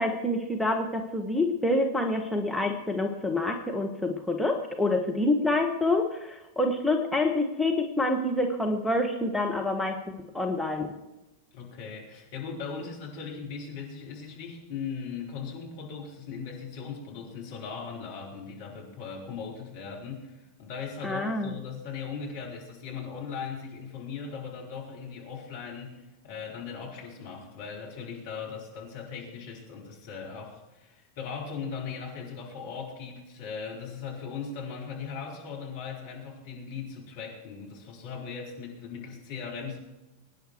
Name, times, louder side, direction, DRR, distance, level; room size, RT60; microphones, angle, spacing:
voice 1, 0.0-10.0 10.3-10.9 21.0-21.5, left 2 dB, 5° left, 1 dB, 1.5 m, -27 dB
voice 2, 11.5-39.8, left 6 dB, 50° left, -2 dB, 4.7 m, -39 dB
23.0 x 10.0 x 4.7 m, 1.0 s
figure-of-eight pair, 90°, 0 cm